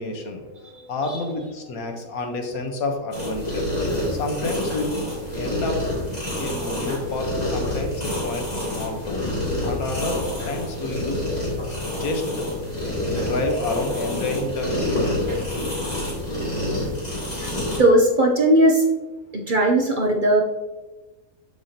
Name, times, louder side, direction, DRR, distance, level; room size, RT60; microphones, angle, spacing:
voice 1, 0.0-5.0 5.3-5.8 6.4-9.3 9.6-15.6 15.8-15.9, left 2 dB, 80° left, 3 dB, 1.5 m, -30 dB
sound 1, 3.1-17.8, left 1 dB, 30° left, 2.4 m, -27 dB
voice 2, 17.8-18.8 19.3-20.4, right 1 dB, 45° right, 1 dB, 0.7 m, -18 dB
6.9 x 6.8 x 2.8 m, 1.2 s
omnidirectional pair, 1.5 m